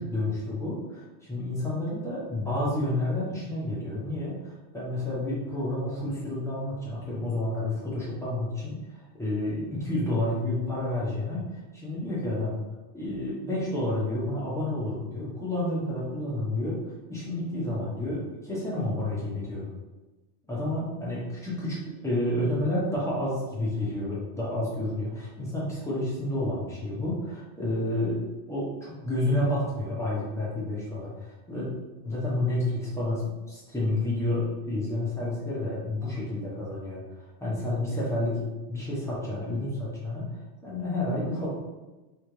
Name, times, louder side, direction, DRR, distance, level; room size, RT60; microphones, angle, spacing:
voice 1, 0.0-8.8 9.2-12.6 12.9-16.8 17.1-19.7 20.5-28.2 28.5-31.7 32.0-33.2 33.5-41.5, left 1 dB, 5° left, -8 dB, 1.2 m, -30 dB
3.5 x 3.4 x 3.3 m, 1.1 s
omnidirectional pair, 1.2 m